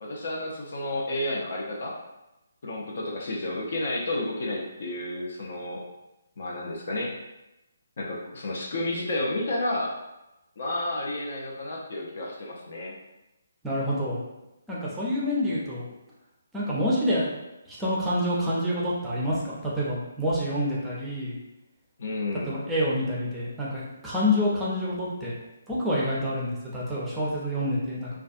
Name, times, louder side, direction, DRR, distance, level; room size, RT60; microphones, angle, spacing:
voice 1, 0.0-1.9 2.6-5.8 6.4-7.1 8.0-10.0 10.6-12.9 22.0-22.5, left 1 dB, 50° left, -2 dB, 0.5 m, -31 dB
voice 2, 13.6-14.2 14.7-15.8 16.5-17.3 17.7-21.3 22.4-25.3 25.7-28.1, left 1 dB, 5° right, -7 dB, 0.5 m, -27 dB
2.4 x 2.3 x 2.5 m, 0.95 s
figure-of-eight pair, 140°, 0 cm